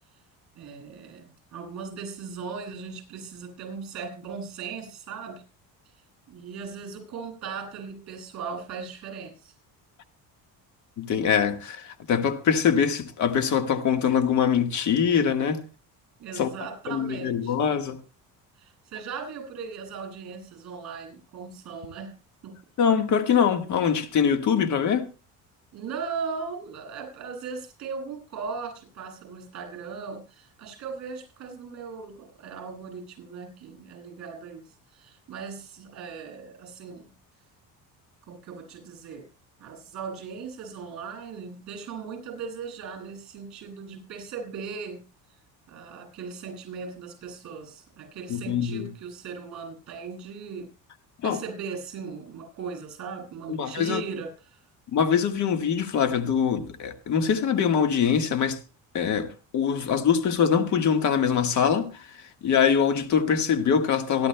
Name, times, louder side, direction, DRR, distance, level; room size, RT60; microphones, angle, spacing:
voice 1, 0.5-1.2 1.5-5.4 6.3-9.5 16.2-17.5 18.6-22.1 22.4-22.6 25.7-37.1 38.3-39.3 39.6-45.0 45.7-50.7 51.2-54.3, right 5 dB, 50° right, 7.7 m, -38 dB
voice 2, 11.0-15.6 16.4-16.5 16.9-18.0 22.8-25.1 48.3-48.9 51.2-51.4 53.5-54.0 54.9-58.6 58.9-64.3, left 7 dB, 50° left, 1.6 m, -23 dB
26.0 x 12.5 x 2.2 m
cardioid pair, 140°, 37 cm